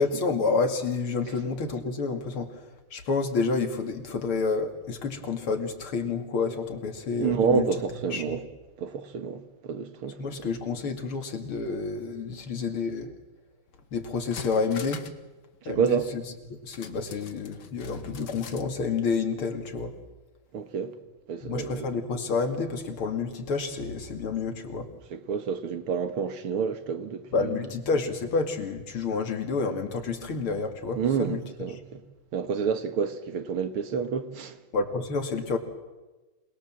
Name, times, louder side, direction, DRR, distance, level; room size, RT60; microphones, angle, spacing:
voice 1, 0.0-2.6 2.9-7.7 8.1-8.4 10.2-13.1 13.9-15.0 15.6-16.2 16.5-19.9 21.4-24.9 27.3-31.4 34.7-35.6, left 4 dB, 80° left, 3.2 m, -29 dB
voice 2, 7.2-8.4 8.8-10.2 15.6-16.1 20.5-20.9 21.3-21.9 25.1-27.5 31.0-32.0 32.3-34.6, right 6 dB, 85° right, 2.4 m, -29 dB
sound 1, 13.7-13.8 14.1-15.3 15.5-15.6 16.7-18.7 19.0-19.1, left 7 dB, 55° left, 2.0 m, -44 dB
27.0 x 21.0 x 7.5 m
omnidirectional pair, 2.3 m